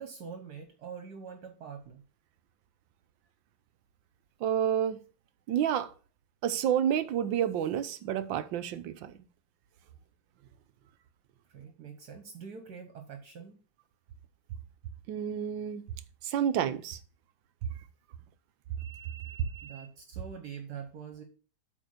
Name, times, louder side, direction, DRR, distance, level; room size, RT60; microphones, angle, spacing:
voice 1, 0.0-2.0 11.5-13.6 19.6-21.2, right 7 dB, 55° right, 1.5 m, -44 dB
voice 2, 4.4-5.0 5.5-5.9 6.4-9.2 15.1-15.8 16.2-17.0 18.8-19.9, right 9 dB, 70° right, 1.3 m, -30 dB
8.2 x 4.3 x 6.4 m
omnidirectional pair, 2.3 m